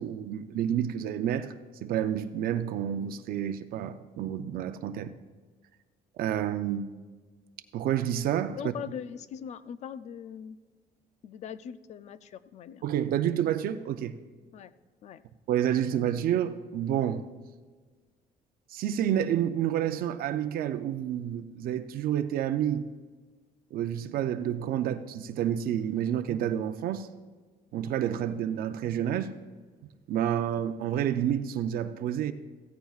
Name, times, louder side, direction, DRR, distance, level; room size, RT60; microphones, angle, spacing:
voice 1, 0.0-1.5 1.8-5.1 6.2-6.9 7.7-8.6 12.8-14.1 15.5-17.3 18.7-22.8 23.7-27.1 27.7-29.3 30.1-32.3, right 10 dB, 75° right, 0.5 m, -29 dB
voice 2, 8.6-10.6 11.2-12.9 14.5-14.7 15.0-15.2, left 8 dB, 50° left, 0.4 m, -41 dB
16.0 x 15.0 x 2.4 m
cardioid pair, 155°, 15 cm